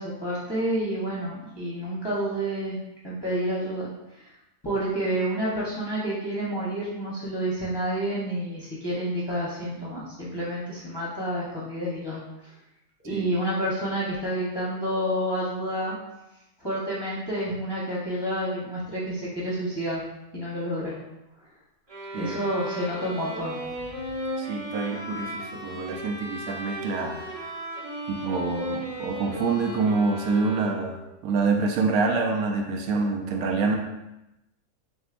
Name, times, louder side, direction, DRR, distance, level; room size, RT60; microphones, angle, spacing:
voice 1, 0.0-2.8 3.0-3.9 4.2-4.3 4.6-12.2 13.0-16.0 16.6-20.0 20.3-20.9 22.2-23.6, right 1 dB, 20° left, -8 dB, 0.8 m, -29 dB
sound 1, 21.9-31.1, equal, 20° right, 1.0 m, -35 dB
voice 2, 24.4-27.2 28.1-33.8, right 4 dB, 80° right, 3 dB, 1.1 m, -26 dB
6.3 x 2.7 x 2.5 m, 0.93 s
omnidirectional pair, 1.5 m